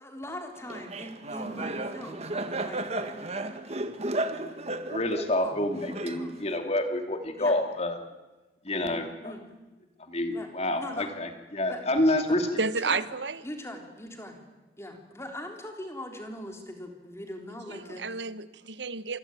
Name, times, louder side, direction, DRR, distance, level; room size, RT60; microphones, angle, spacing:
voice 1, 0.0-3.1 5.4-5.6 6.2-6.3 7.4-7.6 8.8-9.4 9.7-9.8 10.3-10.5 10.8-11.1 11.7-11.8 12.6-13.1 13.4-14.4 14.8-18.1, left 1 dB, 15° left, 3 dB, 3.7 m, -41 dB
Laughter, 0.7-6.6, right 2 dB, 35° right, 1.8 m, -34 dB
voice 2, 4.9-8.0 8.6-9.3 10.0-12.5, left 1 dB, 35° left, 6 dB, 2.7 m, -28 dB
voice 3, 12.6-13.4 17.9-19.2, right 4 dB, 65° right, 14 dB, 1.2 m, -31 dB
27.0 x 21.0 x 9.2 m, 1.2 s
head